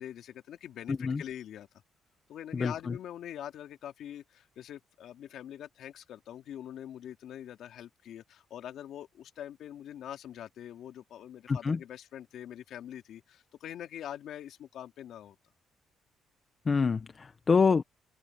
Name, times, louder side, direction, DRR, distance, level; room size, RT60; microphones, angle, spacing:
voice 1, 0.0-1.7 2.3-15.4, left 10 dB, 75° left, 3.1 m, -44 dB
voice 2, 0.9-1.2 2.5-2.7 11.5-11.8 16.7-17.8, left 5 dB, 35° left, 1.0 m, -26 dB
open air
cardioid pair, 90°, 0 cm